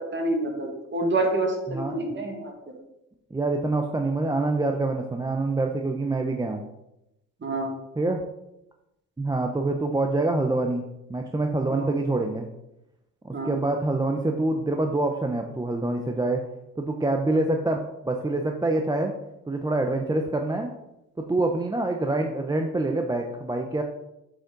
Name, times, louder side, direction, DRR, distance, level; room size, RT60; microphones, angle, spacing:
voice 1, 0.0-2.7 7.4-7.7 11.7-11.9 13.3-13.6, right 2 dB, 40° right, 2 dB, 2.1 m, -28 dB
voice 2, 3.3-6.6 8.0-8.2 9.2-10.8 11.1-12.5 13.2-16.4 16.8-19.1 19.5-20.7 21.3-23.8, right 2 dB, 15° right, 3 dB, 0.7 m, -26 dB
8.3 x 5.4 x 3.9 m, 0.88 s
cardioid pair, 90°, 30 cm